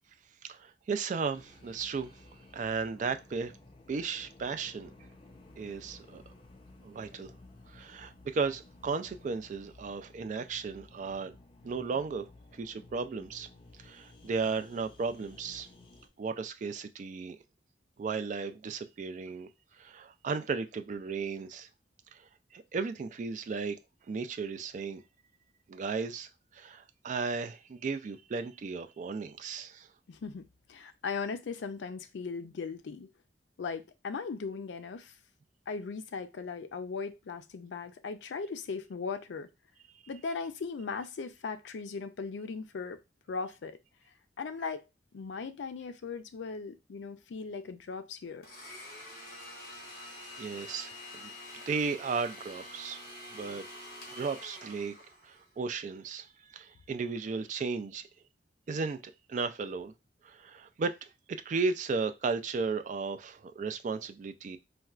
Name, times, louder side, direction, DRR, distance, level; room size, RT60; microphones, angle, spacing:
voice 1, 0.5-2.2 2.5-3.6 3.9-4.9 5.6-6.2 6.8-7.3 7.7-11.4 11.6-12.3 12.5-13.5 13.8-15.7 16.2-17.4 18.0-19.5 19.8-21.7 22.1-23.8 24.1-25.0 25.7-29.9 50.4-53.0 53.3-53.6 54.1-54.9 55.2-58.1 58.7-59.9 60.2-64.6, right 4 dB, 45° right, 0.3 m, -35 dB
sound 1, 1.3-16.1, left 2 dB, 30° left, 0.5 m, -55 dB
voice 2, 30.1-33.1 33.6-35.1 35.7-39.5 40.1-43.0 43.3-43.8 44.4-44.8 45.1-48.5, left 5 dB, 85° left, 0.4 m, -38 dB
Domestic sounds home sounds, 48.4-55.5, left 1 dB, 55° left, 1.1 m, -47 dB
4.2 x 2.2 x 2.3 m
head